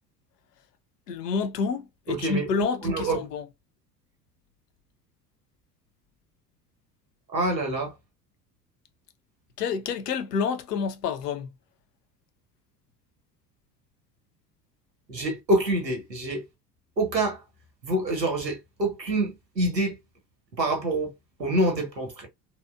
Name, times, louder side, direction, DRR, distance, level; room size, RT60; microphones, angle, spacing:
voice 1, 1.1-3.5 9.6-11.5, left 6 dB, 70° left, 0.6 m, -29 dB
voice 2, 2.1-3.2 7.3-7.9 15.1-16.4 17.0-17.4 17.8-20.0 20.6-21.1 21.4-22.3, right 1 dB, 90° right, 0.9 m, -26 dB
2.8 x 2.1 x 2.2 m
figure-of-eight pair, 70°, 49 cm